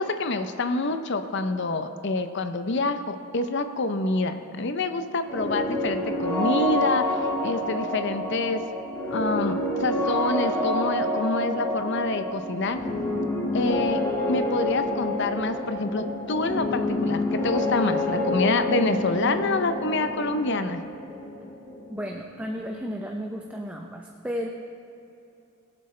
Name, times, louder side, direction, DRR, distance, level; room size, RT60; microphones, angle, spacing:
voice 1, 0.0-8.6 9.1-12.8 13.5-14.0 14.3-20.8, left 2 dB, 55° left, 8 dB, 0.6 m, -27 dB
sound 1, 5.3-22.9, left 1 dB, 10° left, 1.7 m, -28 dB
voice 2, 21.9-24.5, equal, 5° right, 1 dB, 0.6 m, -33 dB
21.5 x 7.5 x 3.2 m, 2.7 s
head